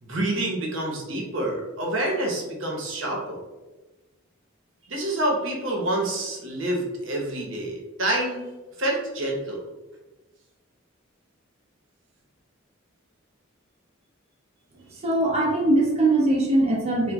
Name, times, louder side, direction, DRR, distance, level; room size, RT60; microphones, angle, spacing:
voice 1, 0.0-3.4 4.9-8.5 8.8-9.6, right 1 dB, 65° right, -1 dB, 0.8 m, -27 dB
voice 2, 15.0-17.1, right 2 dB, 30° right, -3 dB, 0.6 m, -21 dB
3.0 x 2.2 x 3.4 m, 1.1 s
head